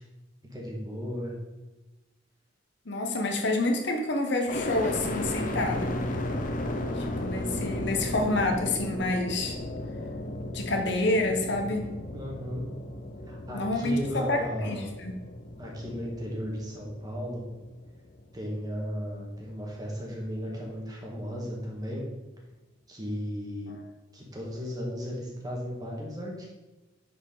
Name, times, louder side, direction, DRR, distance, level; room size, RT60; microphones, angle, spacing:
voice 1, 0.5-1.3 12.1-12.6 13.3-14.9 15.6-17.4 18.3-22.0 22.9-23.7 24.1-26.5, equal, 20° right, -2 dB, 1.8 m, -35 dB
voice 2, 2.9-6.0 7.0-9.6 10.5-11.9 13.5-15.1, left 2 dB, 60° left, 3 dB, 1.1 m, -28 dB
sound 1, 4.5-18.5 19.0-19.7, left 1 dB, 45° left, 0.8 m, -35 dB
10.5 x 4.8 x 3.9 m, 1.1 s
head